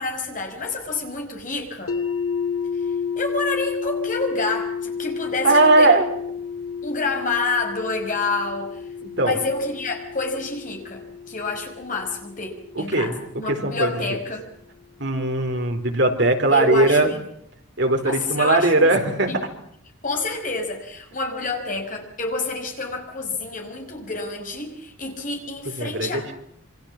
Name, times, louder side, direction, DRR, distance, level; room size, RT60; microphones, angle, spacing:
voice 1, 0.0-1.9 3.2-6.0 6.8-8.9 9.2-14.5 16.5-17.2 18.0-18.9 19.3-19.4 20.0-26.3, left 3 dB, 40° left, 4 dB, 5.3 m, -28 dB
sound 1, 1.9-13.8, left 6 dB, 90° left, 2.2 m, -31 dB
voice 2, 5.4-6.0 9.0-9.4 12.8-13.1 13.6-13.9 15.0-17.1 17.8-19.3 25.8-26.3, right 2 dB, 55° right, 4 dB, 4.1 m, -19 dB
27.0 x 25.5 x 7.4 m, 0.68 s
head